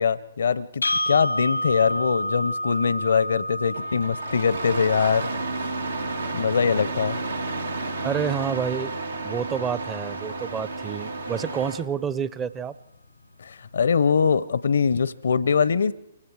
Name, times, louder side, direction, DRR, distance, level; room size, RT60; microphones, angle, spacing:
voice 1, 0.0-5.3 5.6-5.7 6.3-7.2 13.4-15.9, left 6 dB, 70° left, 18 dB, 0.7 m, -22 dB
sound 1, 0.8-8.9, left 1 dB, 90° left, 1.1 m, -31 dB
Engine starting, 3.7-11.9, right 3 dB, 85° right, 1.8 m, -31 dB
voice 2, 8.0-8.9 9.2-12.7, right 7 dB, 20° right, 17 dB, 0.7 m, -28 dB
29.0 x 24.0 x 4.8 m, 0.86 s
figure-of-eight pair, 125°, 0 cm